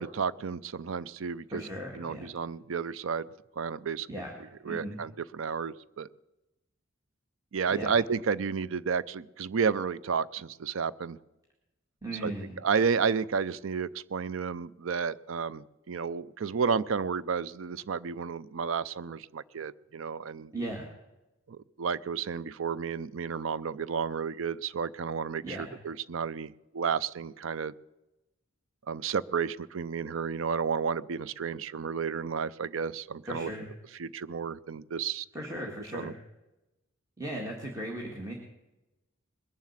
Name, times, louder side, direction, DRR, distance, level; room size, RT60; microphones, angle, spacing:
voice 1, 0.0-1.7 2.0-3.3 3.6-4.1 4.6-6.1 7.5-11.2 12.2-12.3 12.6-20.5 21.5-27.7 28.9-33.5 34.0-35.3 35.9-36.1, right 6 dB, 75° right, 18 dB, 0.5 m, -32 dB
voice 2, 1.5-2.3 4.1-4.4 4.6-5.0 7.7-7.9 12.0-12.6 20.5-20.9 25.4-25.8 33.3-33.7 35.3-36.2 37.2-38.3, right 1 dB, 15° right, -1 dB, 1.8 m, -37 dB
21.0 x 7.5 x 7.3 m, 0.99 s
head